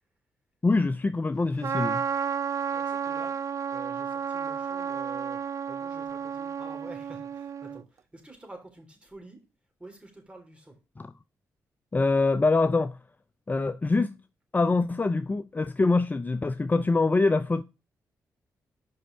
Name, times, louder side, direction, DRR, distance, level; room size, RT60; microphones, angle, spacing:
voice 1, 0.6-2.0 11.0-11.1 11.9-13.0 13.5-14.1 14.5-17.6, left 3 dB, 25° left, 0.5 m, -24 dB
Trumpet, 1.6-7.8, right 7 dB, 45° right, 0.3 m, -32 dB
voice 2, 2.7-3.4 3.7-5.4 5.7-9.4 9.8-10.8, right 2 dB, 15° right, 3.5 m, -48 dB
5.5 x 5.4 x 5.4 m
hypercardioid pair, 45°, 7 cm